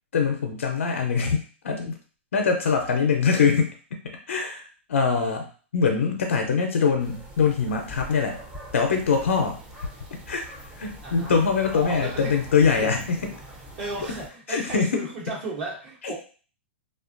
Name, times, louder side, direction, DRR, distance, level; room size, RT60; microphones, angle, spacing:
voice 1, 0.1-1.9 2.3-3.7 4.3-5.5 5.7-8.4 8.7-9.6 10.3-10.4 10.8-13.0 14.5-15.0 16.0-16.1, left 5 dB, 85° left, 3 dB, 0.5 m, -23 dB
sound 1, 7.0-14.3, right 1 dB, 10° right, 0.5 m, -43 dB
voice 2, 11.0-11.4 11.7-12.4 12.7-13.0 13.8-16.1, right 2 dB, 55° right, -5 dB, 1.0 m, -34 dB
2.5 x 2.2 x 2.5 m, 0.39 s
hypercardioid pair, 130°, 7 cm